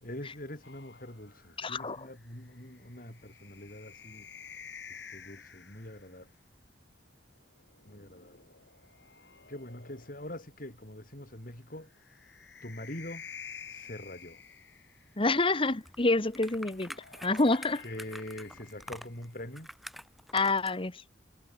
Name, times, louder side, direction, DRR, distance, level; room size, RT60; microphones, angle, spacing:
voice 1, 0.0-6.4 7.9-8.4 9.5-13.3 13.7-14.4 17.8-19.7, left 1 dB, 50° left, 7.0 m, -44 dB
sound 1, 0.6-6.2 7.5-10.5 11.9-15.3 16.6-19.5, left 7 dB, 75° left, 7.6 m, -51 dB
voice 2, 1.6-2.0 15.2-16.9 17.2-17.8 20.3-21.0, left 2 dB, 30° left, 1.4 m, -27 dB
sound 2, 15.6-20.8, equal, ahead, 3.8 m, -47 dB
head